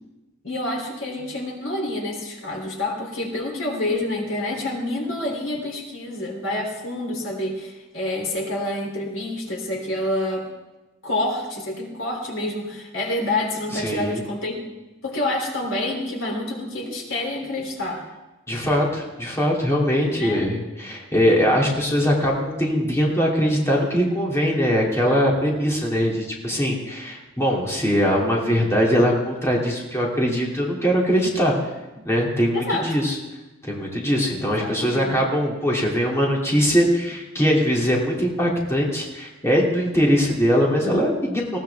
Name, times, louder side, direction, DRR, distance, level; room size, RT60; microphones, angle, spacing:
voice 1, 0.4-10.5 11.0-14.6 15.0-18.0 20.2-20.5 32.5-32.9 34.5-35.1, left 1 dB, 70° left, 0 dB, 3.3 m, -28 dB
voice 2, 13.7-14.2 18.5-31.5 32.0-33.2 33.6-41.6, equal, 15° left, -3 dB, 2.7 m, -21 dB
19.5 x 17.5 x 3.5 m, 1.1 s
head